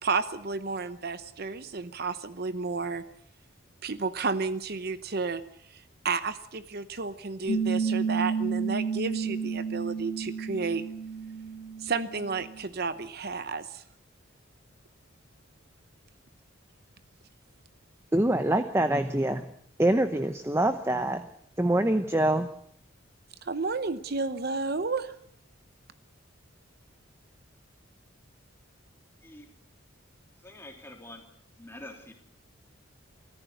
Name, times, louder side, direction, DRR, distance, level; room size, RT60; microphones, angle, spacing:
voice 1, 0.0-3.0 3.8-5.4 5.7-10.9 11.8-13.8 23.4-25.1, right 4 dB, 50° right, 12 dB, 0.8 m, -32 dB
Piano, 7.5-12.6, right 5 dB, 50° left, 2.7 m, -31 dB
voice 2, 18.1-19.5 19.8-21.2 21.6-22.5, right 1 dB, 10° right, 9 dB, 0.8 m, -25 dB
voice 3, 30.4-31.2 31.6-32.1, left 1 dB, 10° left, 3 dB, 3.1 m, -45 dB
24.5 x 14.5 x 7.9 m, 0.67 s
head